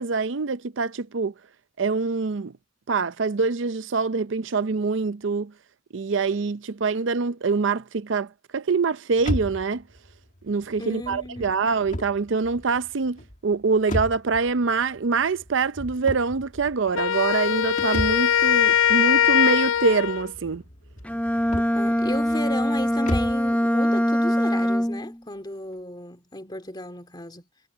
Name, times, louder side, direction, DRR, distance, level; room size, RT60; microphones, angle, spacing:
voice 1, 0.0-1.3 1.8-2.5 2.9-5.5 5.9-9.8 10.4-20.6, right 4 dB, 70° right, 0.6 m, -25 dB
sound 1, 9.2-23.5, equal, 40° left, 2.3 m, -35 dB
voice 2, 10.8-11.5 21.7-27.5, left 1 dB, 20° left, 2.5 m, -35 dB
Wind instrument woodwind instrument, 16.9-20.3, left 9 dB, 90° left, 0.4 m, -21 dB
Bowed string instrument, 21.0-25.2, equal, 5° left, 0.8 m, -23 dB
head